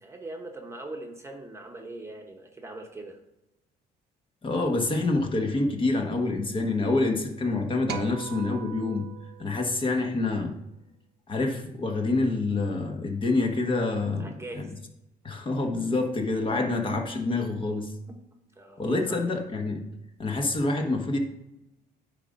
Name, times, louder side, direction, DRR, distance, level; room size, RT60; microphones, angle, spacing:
voice 1, 0.0-3.2 14.2-14.7 18.1-18.2 18.6-19.2, right 2 dB, 15° right, 2 dB, 1.1 m, -41 dB
voice 2, 4.4-9.0 9.4-10.5 11.3-14.3 14.5-14.7 15.2-17.9 18.8-19.8 20.2-21.2, left 2 dB, 30° left, 3 dB, 1.4 m, -27 dB
sound 1, 7.9-10.4, right 8 dB, 75° right, 0.8 m, -40 dB
9.9 x 3.7 x 5.3 m, 0.91 s
cardioid pair, 110°, 17 cm